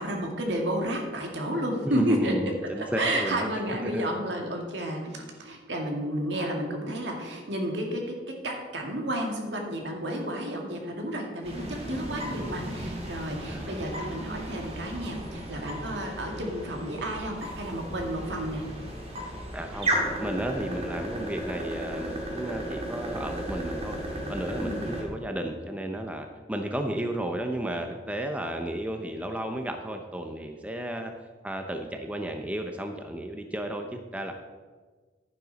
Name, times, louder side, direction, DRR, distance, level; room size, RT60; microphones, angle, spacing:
voice 1, 0.0-2.3 2.8-8.0 8.4-11.6 11.9-18.6 24.5-24.9, right 1 dB, 70° right, 1 dB, 2.1 m, -31 dB
voice 2, 1.8-3.5 3.9-4.0 13.4-13.7 19.5-19.9 20.2-24.0 24.3-31.1 31.4-34.3, right 1 dB, 10° right, 4 dB, 0.6 m, -33 dB
sound 1, 11.4-25.0, right 1 dB, 35° right, 2.2 m, -35 dB
11.0 x 9.8 x 4.0 m, 1.4 s
head